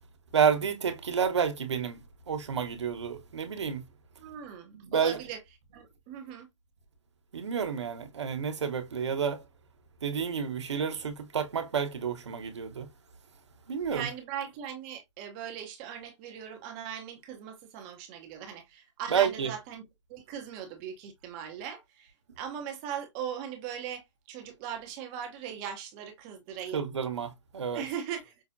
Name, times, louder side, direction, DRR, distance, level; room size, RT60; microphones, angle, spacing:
voice 1, 0.3-2.0 2.3-3.8 4.8-5.2 7.3-9.4 10.0-12.9 13.7-14.1 19.1-19.5 26.7-27.8, right 7 dB, 65° right, 1.1 m, -30 dB
voice 2, 4.2-5.4 5.7-6.5 13.9-19.8 20.1-26.8 27.7-28.3, right 9 dB, 15° right, 0.7 m, -39 dB
5.6 x 2.1 x 2.5 m
hypercardioid pair, 160°, 16 cm